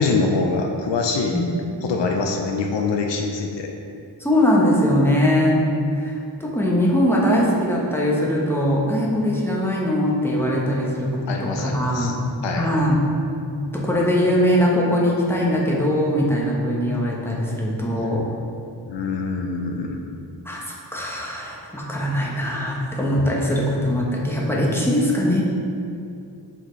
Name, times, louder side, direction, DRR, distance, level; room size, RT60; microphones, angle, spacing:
voice 1, 0.0-1.4 1.8-3.7 10.8-10.9 11.3-12.1 12.4-12.7 18.9-20.1, left 4 dB, 85° left, 2 dB, 0.6 m, -24 dB
voice 2, 4.2-5.7 6.0-12.2 12.5-13.1 13.7-18.3 20.4-20.6 20.9-25.4, equal, 5° left, -4 dB, 0.9 m, -21 dB
7.8 x 4.2 x 3.1 m, 2.5 s
wide cardioid pair, 115°, 42 cm